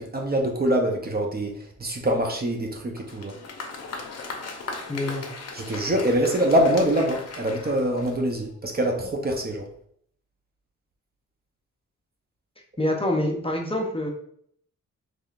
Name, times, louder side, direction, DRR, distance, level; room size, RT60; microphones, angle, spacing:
voice 1, 0.0-3.3 5.5-9.7, right 1 dB, 30° right, 2 dB, 0.6 m, -24 dB
Applause, 3.0-8.5, left 3 dB, 55° left, 0.6 m, -38 dB
voice 2, 4.9-5.2 12.8-14.1, left 1 dB, 20° left, 0 dB, 0.6 m, -26 dB
3.6 x 3.2 x 2.4 m, 0.65 s
cardioid pair, 90°, 30 cm